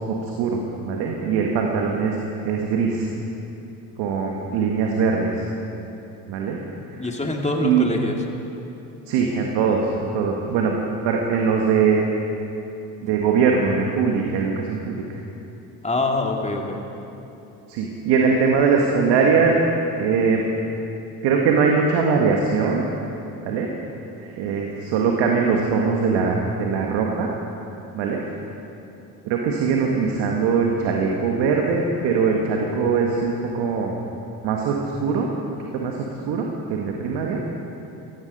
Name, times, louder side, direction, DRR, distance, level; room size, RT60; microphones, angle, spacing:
voice 1, 0.0-3.1 4.0-5.4 6.3-6.6 6.9-7.1 7.6-7.9 9.1-10.7 11.0-12.0 13.0-15.0 17.7-19.6 20.0-20.4 21.2-22.9 23.4-23.7 24.2-27.3 27.9-28.2 29.2-34.0 34.4-35.3 35.7-37.4, right 5 dB, 70° right, 0 dB, 1.8 m, -21 dB
voice 2, 7.0-8.1 15.8-16.8, left 2 dB, 15° left, 2 dB, 2.4 m, -24 dB
17.0 x 14.0 x 5.4 m, 2.9 s
hypercardioid pair, 65°, 42 cm